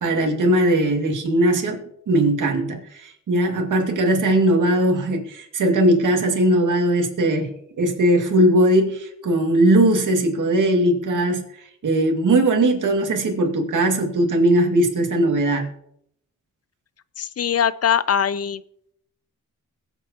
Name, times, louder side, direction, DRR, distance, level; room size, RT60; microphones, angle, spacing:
voice 1, 0.0-11.4 11.8-15.7, right 1 dB, 80° right, 2.2 m, -19 dB
voice 2, 17.2-18.6, left 8 dB, 50° left, 0.6 m, -21 dB
22.0 x 8.2 x 2.9 m
cardioid pair, 80°, 31 cm